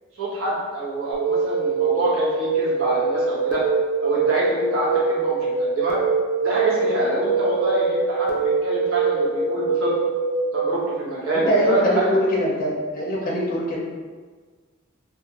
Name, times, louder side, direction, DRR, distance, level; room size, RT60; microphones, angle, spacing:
voice 1, 0.2-3.6 4.0-6.0 6.4-9.9 10.5-12.3, right 2 dB, 80° right, -7 dB, 0.8 m, -26 dB
sound 1, 1.1-10.7, right 4 dB, 55° right, 0.4 m, -23 dB
voice 2, 11.3-13.8, equal, 45° left, -4 dB, 0.4 m, -22 dB
2.3 x 2.1 x 2.8 m, 1.5 s
head